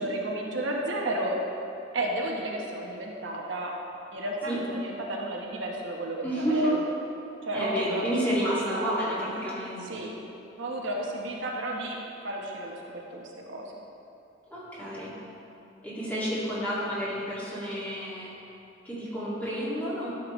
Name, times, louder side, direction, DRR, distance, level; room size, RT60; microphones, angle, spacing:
voice 1, 0.0-1.4 1.9-3.7 4.1-6.8 7.4-8.0 8.5-8.9 9.8-10.1 10.6-12.0 12.2-13.6, right 1 dB, 65° right, -2 dB, 1.0 m, -32 dB
voice 2, 6.2-6.8 7.5-10.1 14.5-15.2 15.8-18.3 18.8-20.1, equal, 10° left, -9 dB, 2.1 m, -30 dB
13.0 x 6.6 x 3.1 m, 2.8 s
head